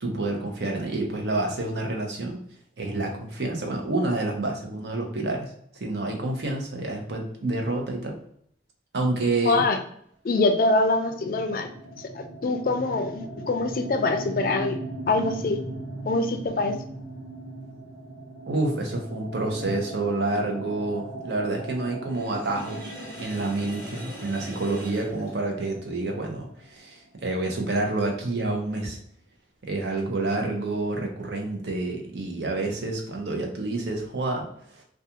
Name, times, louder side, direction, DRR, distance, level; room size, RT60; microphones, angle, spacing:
voice 1, 0.0-2.4 2.8-8.2 8.9-9.6 18.5-29.0 29.6-34.8, right 2 dB, 75° right, 1 dB, 0.6 m, -28 dB
voice 2, 9.4-9.8 10.2-11.7 12.1-14.8 15.1-15.6 16.0-16.8, left 2 dB, 50° left, 6 dB, 0.3 m, -24 dB
sound 1, 10.9-26.5, right 2 dB, 10° right, 0.6 m, -39 dB
Sink (filling or washing), 22.1-26.0, right 1 dB, 30° right, 1.1 m, -42 dB
2.4 x 2.3 x 2.7 m, 0.68 s
head